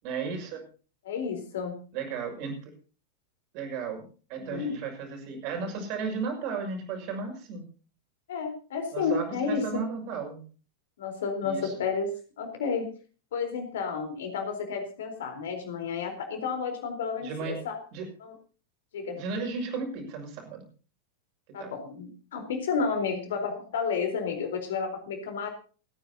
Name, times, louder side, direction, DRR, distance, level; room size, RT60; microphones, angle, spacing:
voice 1, 0.0-0.6 1.9-2.7 3.5-7.6 8.9-10.4 11.4-11.7 17.2-17.6 17.9-18.0 19.1-20.6 21.6-21.7, right 5 dB, 45° right, 3 dB, 6.2 m, -34 dB
voice 2, 1.0-1.7 4.4-4.8 8.3-9.9 11.0-12.9 13.3-17.8 18.2-18.3 18.9-19.2 21.5-25.5, left 5 dB, 60° left, 6 dB, 4.1 m, -31 dB
29.0 x 10.0 x 2.8 m, 0.38 s
figure-of-eight pair, 90°, 0 cm